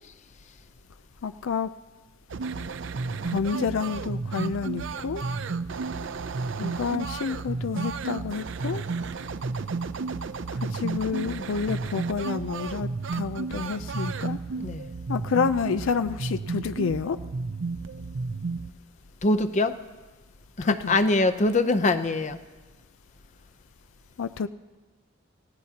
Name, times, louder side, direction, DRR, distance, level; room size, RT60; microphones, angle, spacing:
voice 1, 1.2-1.7 3.3-5.2 6.6-8.8 10.5-14.4 15.1-17.2 20.6-21.0 24.2-24.5, left 5 dB, 80° left, 0.4 m, -29 dB
sound 1, 2.3-18.7, right 4 dB, 65° right, 0.5 m, -32 dB
voice 2, 14.5-14.9 19.2-19.8 20.6-22.4, left 2 dB, 35° left, 0.7 m, -23 dB
28.5 x 16.5 x 2.9 m
head